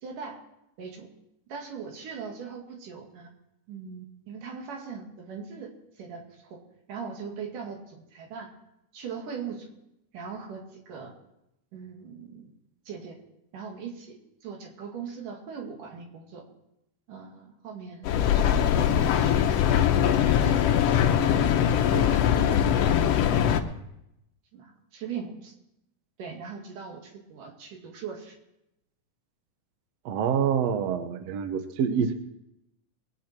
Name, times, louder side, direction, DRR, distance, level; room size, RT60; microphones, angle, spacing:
voice 1, 0.0-0.4 0.8-1.1 1.5-3.3 3.7-5.7 6.0-6.6 6.9-8.5 8.9-9.7 10.1-11.1 11.7-12.5 12.9-13.2 13.5-16.4 17.1-19.8 20.4-23.1 23.5-23.8 24.5-25.5 26.2-28.4, right 6 dB, 80° right, 1 dB, 3.8 m, -40 dB
Mechanical fan, 18.0-23.6, left 9 dB, 70° left, 1.5 m, -22 dB
voice 2, 30.1-32.2, right 7 dB, 65° right, 8 dB, 1.8 m, -26 dB
23.0 x 9.3 x 4.5 m, 0.84 s
omnidirectional pair, 3.7 m